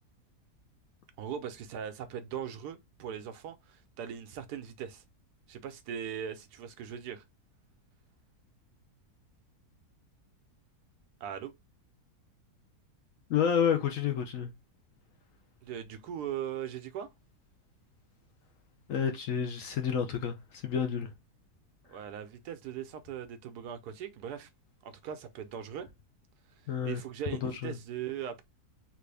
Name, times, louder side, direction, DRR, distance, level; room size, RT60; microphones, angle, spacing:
voice 1, 1.2-5.0 5.5-7.2 11.2-11.5 15.6-17.1 21.9-24.5 24.8-25.9 26.8-28.4, right 9 dB, 80° right, 1.2 m, -39 dB
voice 2, 13.3-14.5 18.9-21.1 26.7-27.0 27.4-27.8, left 7 dB, 70° left, 0.8 m, -30 dB
3.3 x 2.5 x 3.2 m
omnidirectional pair, 1.7 m